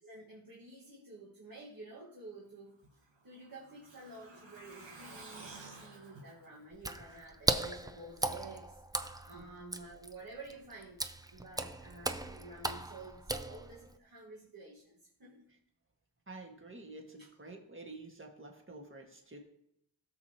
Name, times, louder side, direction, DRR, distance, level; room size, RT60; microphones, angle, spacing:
voice 1, 0.0-2.8 3.2-11.0 11.3-15.5 17.2-17.4, right 2 dB, 50° right, -5 dB, 1.7 m, -51 dB
Truck, 2.8-7.5 7.8-7.9 8.2-8.3, right 3 dB, 90° right, 1.6 m, -52 dB
Water / Splash splatter, 6.7-14.0, right 1 dB, 10° right, 0.5 m, -37 dB
voice 2, 16.3-19.4, right 2 dB, 30° right, 1 dB, 1.7 m, -49 dB
17.0 x 6.9 x 2.9 m, 0.77 s
wide cardioid pair, 95°, 43 cm